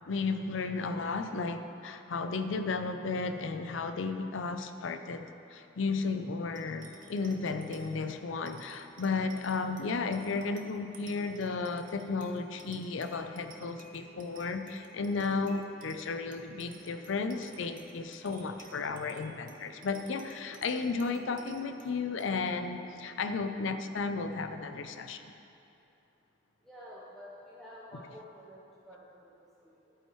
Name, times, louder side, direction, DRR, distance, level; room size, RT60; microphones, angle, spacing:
voice 1, 0.1-25.3, left 4 dB, 80° left, 8 dB, 0.5 m, -34 dB
sound 1, 6.6-25.4, right 3 dB, 45° right, 0.8 m, -55 dB
voice 2, 26.6-29.9, equal, ahead, -8 dB, 0.9 m, -50 dB
11.0 x 8.9 x 3.1 m, 2.8 s
head